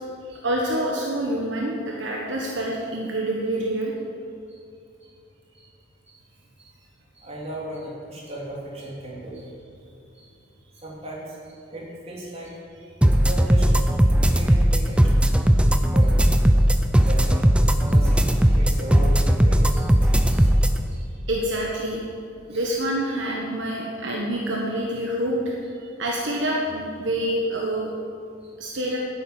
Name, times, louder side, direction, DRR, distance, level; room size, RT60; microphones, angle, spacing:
voice 1, 0.2-3.9 21.3-22.0 22.5-27.9 28.6-29.0, right 1 dB, 60° right, -2 dB, 1.4 m, -27 dB
voice 2, 7.1-9.5 10.1-10.3 10.7-12.5 13.2-13.7 14.2-15.1 15.9-16.2 17.0-17.4 17.7-20.6 20.9-21.1 22.5-22.6 28.4-28.5, right 1 dB, 30° right, -4 dB, 3.2 m, -37 dB
sound 1, 13.0-20.8, equal, 5° right, 0.5 m, -18 dB
10.5 x 9.0 x 8.9 m, 2.5 s
head